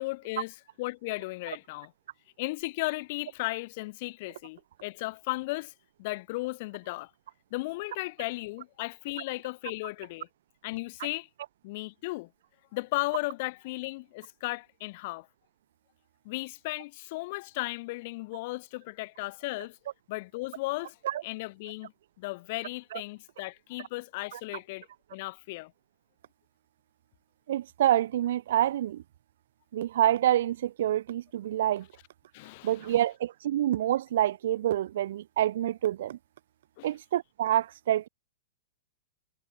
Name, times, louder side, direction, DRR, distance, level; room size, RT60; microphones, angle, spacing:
voice 1, 0.0-1.9 2.4-5.7 6.0-7.1 7.5-10.3 10.6-11.3 11.6-12.3 12.7-15.3 16.2-19.8 20.1-21.0 21.2-21.9 22.2-25.7 32.3-32.9 36.8-36.9, left 22 dB, 55° left, 0.9 m, -35 dB
voice 2, 27.5-29.0 29.7-31.9 32.6-36.2 36.8-38.1, right 12 dB, 65° right, 0.5 m, -27 dB
hypercardioid pair, 115°, 0 cm